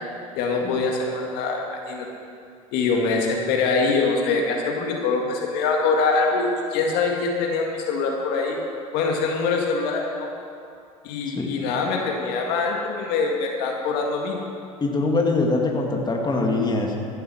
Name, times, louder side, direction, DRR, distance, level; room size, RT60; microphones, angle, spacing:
voice 1, 0.4-2.1 2.7-8.6 8.9-10.3 11.0-14.4, left 4 dB, 65° left, 0 dB, 1.9 m, -24 dB
voice 2, 14.8-17.0, left 2 dB, 25° left, 1 dB, 2.1 m, -23 dB
15.0 x 7.9 x 6.4 m, 2.5 s
hypercardioid pair, 70°, 17 cm